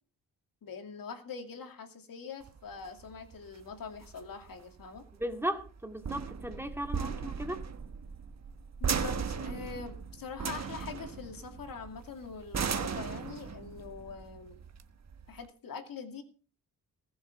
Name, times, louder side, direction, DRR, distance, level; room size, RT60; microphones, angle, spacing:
voice 1, 0.6-5.1 8.8-14.6 15.3-16.2, left 6 dB, 70° left, 5 dB, 2.6 m, -43 dB
sound 1, 2.4-15.4, right 6 dB, 45° right, 1.3 m, -37 dB
voice 2, 5.2-7.6, equal, 5° right, 4 dB, 2.2 m, -36 dB
19.5 x 7.1 x 5.6 m, 0.38 s
cardioid pair, 95°, 36 cm